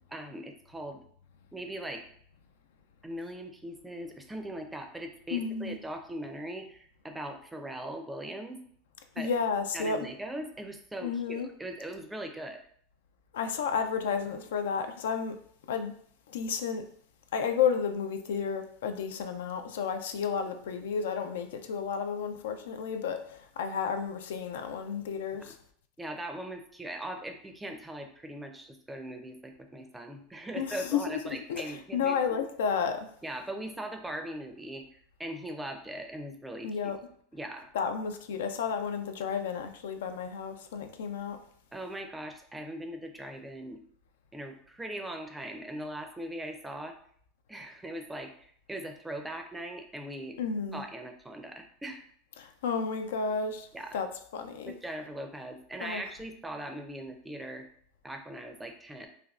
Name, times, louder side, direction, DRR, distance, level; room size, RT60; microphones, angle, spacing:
voice 1, 0.1-1.0 1.5-2.1 3.0-8.6 9.2-9.3 9.7-12.6 25.4-25.5 26.0-32.4 33.2-34.8 35.2-36.7 37.3-37.7 40.5-40.7 41.7-43.8 44.3-46.9 47.5-50.4 50.7-52.0 53.7-54.0 54.6-57.6 58.0-59.1, right 1 dB, 10° right, 5 dB, 0.4 m, -40 dB
voice 2, 5.3-5.7 9.2-10.1 11.0-11.5 13.3-15.4 15.7-15.9 16.3-16.8 17.3-25.5 30.6-33.1 36.6-37.0 37.7-41.4 50.4-50.8 52.4-53.7 53.9-54.1 54.3-54.7 55.8-56.0, left 6 dB, 85° left, 7 dB, 0.3 m, -32 dB
3.3 x 2.1 x 2.4 m, 0.62 s
supercardioid pair, 110°, 0 cm